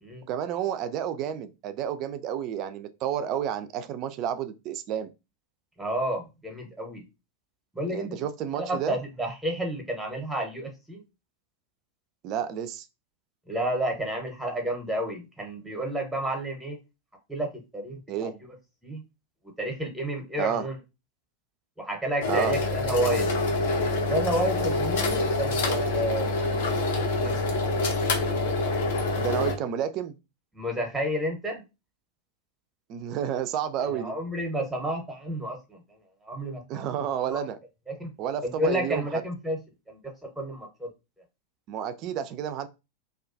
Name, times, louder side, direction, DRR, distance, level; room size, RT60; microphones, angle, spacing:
voice 1, 0.3-5.1 7.9-9.0 12.2-12.9 18.1-18.3 20.4-20.7 22.3-22.6 29.2-30.2 32.9-34.1 36.7-37.6 38.2-39.0 41.7-42.7, right 9 dB, 40° right, 0.3 m, -30 dB
voice 2, 5.8-7.0 7.7-8.2 8.6-11.0 13.5-16.8 17.3-18.5 18.8-19.0 19.6-20.8 21.8-23.3 24.0-27.5 30.5-31.6 33.8-35.8 36.2-36.8 37.3-37.5 37.9-38.1 38.4-39.6 39.9-40.9, right 1 dB, 5° right, 0.7 m, -31 dB
sound 1, 22.2-29.5, left 2 dB, 55° left, 0.5 m, -26 dB
2.3 x 2.2 x 2.4 m
figure-of-eight pair, 90°, 0 cm